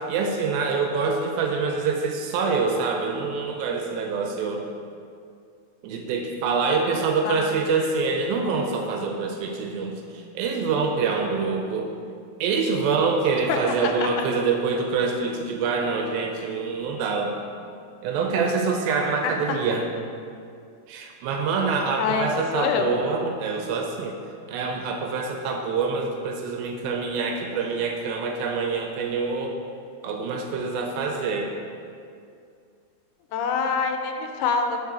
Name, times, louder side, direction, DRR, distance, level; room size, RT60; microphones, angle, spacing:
voice 1, 0.0-4.6 5.8-11.9 12.4-17.4 18.0-19.8 20.9-24.2 24.5-29.5 30.0-31.5, right 4 dB, 80° right, 2 dB, 2.2 m, -25 dB
voice 2, 13.8-14.3 19.2-19.6 22.0-22.9 33.3-34.8, left 5 dB, 85° left, 5 dB, 2.5 m, -26 dB
5.3 x 4.6 x 6.1 m, 2.4 s
omnidirectional pair, 4.5 m